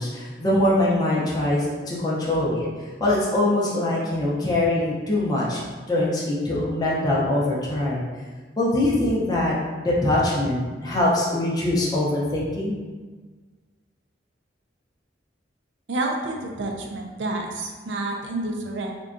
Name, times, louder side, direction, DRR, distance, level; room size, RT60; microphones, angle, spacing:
voice 1, 0.0-2.7 3.0-5.6 5.9-8.0 8.6-12.8, left 1 dB, 20° left, -6 dB, 0.5 m, -23 dB
voice 2, 15.9-18.9, right 2 dB, 80° right, 1 dB, 0.4 m, -29 dB
3.6 x 2.2 x 2.5 m, 1.4 s
head